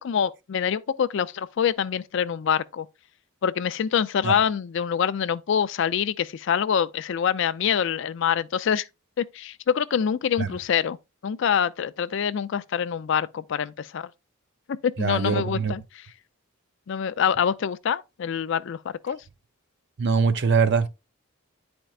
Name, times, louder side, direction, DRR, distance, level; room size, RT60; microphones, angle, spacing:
voice 1, 0.0-2.9 3.4-8.9 9.2-11.0 11.2-14.1 14.7-16.1 16.9-19.2, left 8 dB, 60° left, 0.4 m, -25 dB
voice 2, 15.0-15.7 20.0-20.9, right 5 dB, 55° right, 0.6 m, -22 dB
10.5 x 4.3 x 2.4 m
head